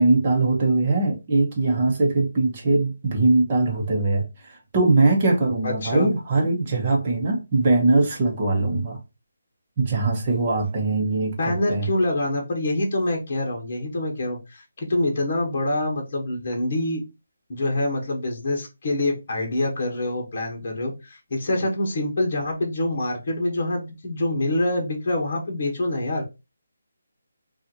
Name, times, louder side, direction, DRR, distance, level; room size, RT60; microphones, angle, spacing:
voice 1, 0.0-9.0 9.8-11.9, right 3 dB, 25° right, 1.0 m, -21 dB
voice 2, 5.6-6.1 11.4-17.0 17.5-26.2, left 1 dB, 30° left, 1.3 m, -25 dB
5.4 x 2.5 x 2.9 m
hypercardioid pair, 175°, 0 cm